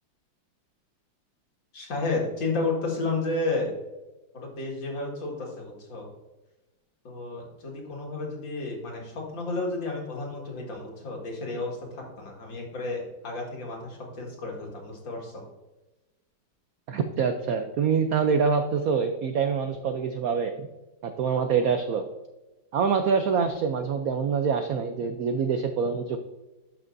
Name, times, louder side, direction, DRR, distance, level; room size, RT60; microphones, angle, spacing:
voice 1, 1.7-3.7 4.3-6.1 7.0-15.4, left 3 dB, 65° left, -1 dB, 2.6 m, -32 dB
voice 2, 16.9-20.7 21.0-22.1 22.7-26.2, right 6 dB, 85° right, 7 dB, 0.7 m, -25 dB
11.5 x 6.1 x 2.6 m, 1.1 s
omnidirectional pair, 2.2 m